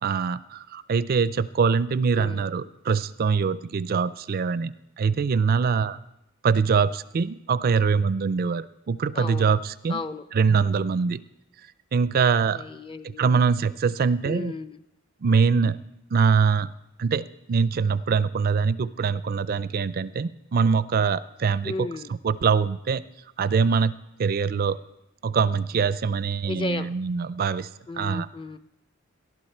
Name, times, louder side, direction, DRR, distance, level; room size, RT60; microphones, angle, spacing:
voice 1, 0.0-6.0 6.4-10.0 10.3-11.2 11.9-12.6 13.2-14.5 15.2-15.8 16.1-16.7 17.0-21.9 22.2-23.0 23.4-23.9 24.2-24.8 25.2-27.7 28.0-28.3, right 5 dB, 45° right, 17 dB, 0.4 m, -23 dB
voice 2, 2.1-2.4 9.1-9.5 9.9-10.3 12.5-13.4 14.2-14.8 21.6-22.2 26.4-26.9 27.9-28.6, left 3 dB, 25° left, 11 dB, 0.5 m, -34 dB
18.0 x 12.0 x 4.4 m, 0.85 s
head